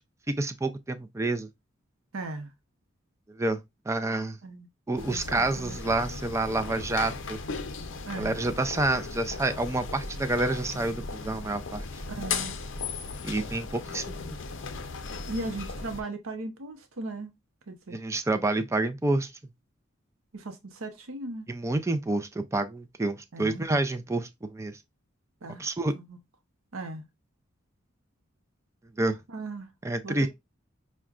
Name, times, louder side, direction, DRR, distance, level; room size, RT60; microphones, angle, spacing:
voice 1, 0.4-1.5 3.4-3.6 3.9-4.4 4.9-7.4 8.2-11.8 13.2-14.4 17.9-19.3 21.5-24.8 25.6-25.9 29.0-29.2 29.8-30.3, right 2 dB, 15° right, 0.3 m, -28 dB
voice 2, 2.1-2.5 4.4-4.7 5.1-5.8 8.1-8.4 12.1-12.6 15.3-17.3 17.7-18.0 20.3-21.5 23.3-23.7 25.4-25.6 25.9-26.2 26.7-27.1 29.3-29.7 30.0-30.3, right 2 dB, 90° right, 0.7 m, -37 dB
sound 1, 5.0-16.0, left 4 dB, 60° left, 0.6 m, -37 dB
5.8 x 2.2 x 2.4 m
head